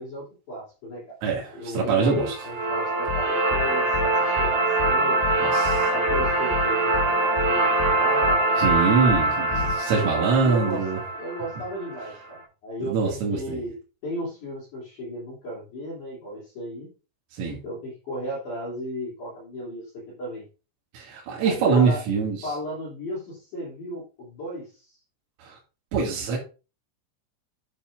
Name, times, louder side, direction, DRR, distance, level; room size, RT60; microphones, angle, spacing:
voice 1, 0.0-1.2 1.5-5.3 5.9-8.6 10.3-10.8 11.1-16.9 17.6-20.5 21.4-22.0 22.4-24.7, equal, 45° left, -4 dB, 3.9 m, -35 dB
voice 2, 1.2-2.4 5.4-5.9 8.6-11.0 12.8-13.6 17.4-17.6 21.0-22.5 25.4-25.6 25.9-26.4, right 5 dB, 80° right, -4 dB, 5.1 m, -24 dB
sound 1, 2.0-12.1, right 2 dB, 45° right, 1.4 m, -24 dB
sound 2, 3.1-3.2 3.5-3.6 3.9-4.1 4.4-4.5 4.8-4.9 5.2-5.4 5.7-5.8 6.1-6.6 6.9-7.1 7.4-7.5 7.8-7.9 8.2-8.4 8.7-8.8 9.1-9.2 9.5-9.7, left 8 dB, 80° left, 2.8 m, -30 dB
12.0 x 7.7 x 2.6 m, 0.33 s
omnidirectional pair, 6.0 m